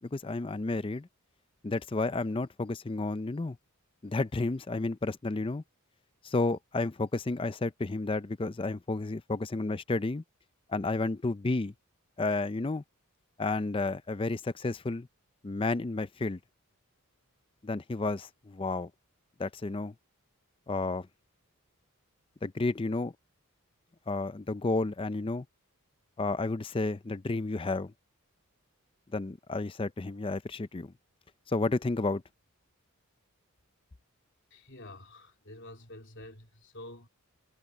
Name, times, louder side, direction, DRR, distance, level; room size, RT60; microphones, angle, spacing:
voice 1, 0.1-1.1 1.6-3.6 4.0-5.6 6.2-10.2 10.7-11.7 12.2-12.8 13.4-15.1 15.4-16.4 17.6-18.9 19.4-19.9 20.7-21.1 22.4-23.1 24.1-25.4 26.2-27.9 29.1-30.9 31.5-32.2, left 3 dB, 25° left, 0.4 m, -31 dB
voice 2, 34.5-37.1, left 1 dB, 55° left, 3.7 m, -48 dB
head